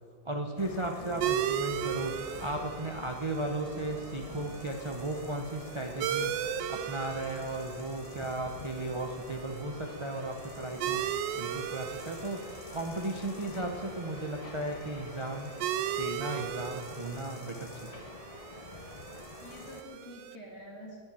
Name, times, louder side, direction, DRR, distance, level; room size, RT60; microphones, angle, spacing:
voice 1, 0.2-11.0 11.3-12.4 12.7-15.5 16.0-18.0, right 2 dB, 35° right, 3 dB, 0.4 m, -36 dB
sound 1, 0.6-19.8, left 4 dB, 70° left, 0.3 m, -47 dB
voice 2, 1.0-1.4 19.4-21.0, equal, 15° left, -4 dB, 1.8 m, -48 dB
sound 2, 1.2-20.4, right 10 dB, 85° right, 1.3 m, -37 dB
sound 3, 1.6-9.9, right 1 dB, 45° left, 2.6 m, -57 dB
10.5 x 8.7 x 9.5 m, 2.2 s
omnidirectional pair, 2.0 m